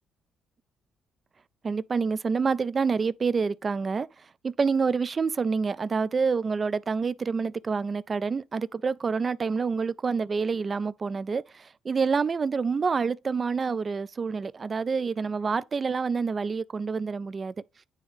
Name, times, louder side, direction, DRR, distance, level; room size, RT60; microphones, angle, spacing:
voice 1, 1.6-17.5, right 5 dB, 40° right, 0.3 m, -27 dB
9.7 x 3.4 x 3.2 m
supercardioid pair, 60°, 0 cm